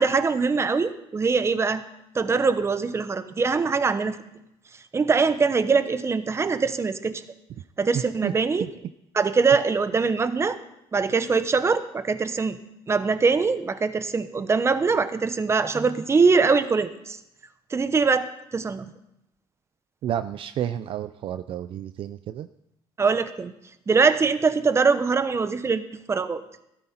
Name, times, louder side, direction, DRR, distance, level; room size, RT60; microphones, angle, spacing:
voice 1, 0.0-1.8 2.1-4.2 4.9-7.2 7.8-8.6 9.1-10.6 10.9-12.6 12.9-17.2 17.7-18.3 18.5-18.9 23.0-23.5 23.9-25.8 26.1-26.4, right 4 dB, 25° right, 11 dB, 1.0 m, -22 dB
voice 2, 7.9-8.7 20.0-22.5, right 10 dB, 60° right, 11 dB, 0.5 m, -31 dB
15.5 x 13.0 x 4.4 m, 0.82 s
cardioid pair, 105°, 10 cm